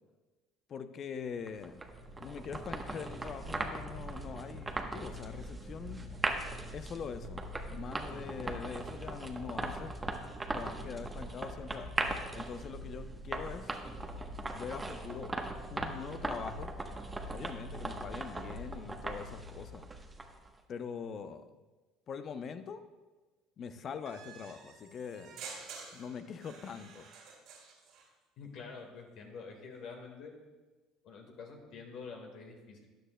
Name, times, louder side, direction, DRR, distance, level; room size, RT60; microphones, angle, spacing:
voice 1, 0.7-1.8 2.2-6.1 6.7-7.4 7.7-9.9 10.5-11.9 12.3-13.7 14.5-15.3 15.7-16.7 17.3-19.9 20.7-21.5 22.1-22.8 23.6-25.4 25.9-27.1, left 6 dB, 50° left, 10 dB, 0.6 m, -43 dB
sound 1, 1.5-20.5, right 2 dB, 20° right, 1.0 m, -39 dB
sound 2, 24.1-28.1, right 5 dB, 65° right, 2.5 m, -49 dB
voice 2, 28.4-30.3 31.0-32.9, left 5 dB, 65° left, 2 dB, 1.6 m, -47 dB
13.0 x 9.1 x 2.2 m, 1.2 s
hypercardioid pair, 75°, 0 cm